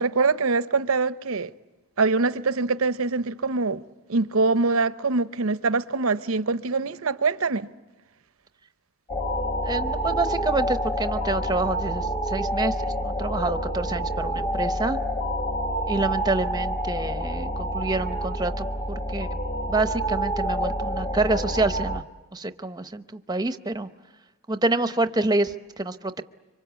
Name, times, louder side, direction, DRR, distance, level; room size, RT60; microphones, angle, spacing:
voice 1, 0.0-1.5 2.0-3.8 4.1-7.7, right 4 dB, 70° right, 0.8 m, -24 dB
sound 1, 9.1-22.0, equal, 25° left, 1.0 m, -28 dB
voice 2, 9.6-15.0 15.9-19.3 19.7-22.0 22.3-23.9 24.5-26.2, right 2 dB, 20° right, 0.8 m, -27 dB
26.0 x 24.5 x 8.2 m
head